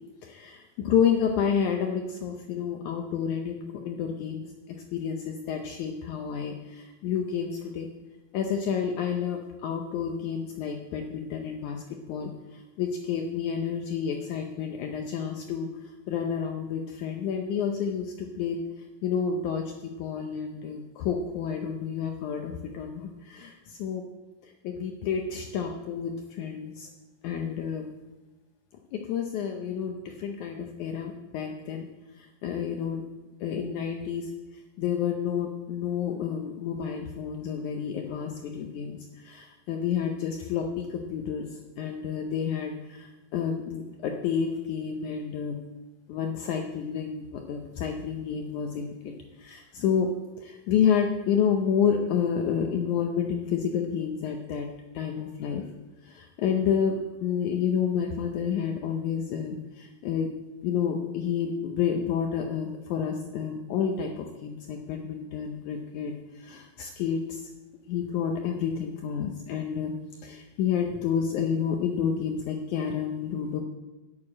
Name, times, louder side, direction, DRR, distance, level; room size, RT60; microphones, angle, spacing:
voice 1, 0.2-4.4 4.9-7.9 8.3-11.8 12.1-15.7 16.1-18.6 19.0-23.5 23.8-24.0 24.6-26.9 27.2-27.9 28.9-31.9 32.4-33.0 33.4-34.3 34.8-41.5 41.8-45.6 46.1-49.1 49.4-50.1 50.4-54.7 54.9-55.6 56.0-60.3 60.6-66.1 66.4-67.4 67.9-69.9 70.2-73.6, left 7 dB, 75° left, 3 dB, 1.9 m, -29 dB
8.7 x 6.6 x 8.4 m, 1.1 s
omnidirectional pair, 4.0 m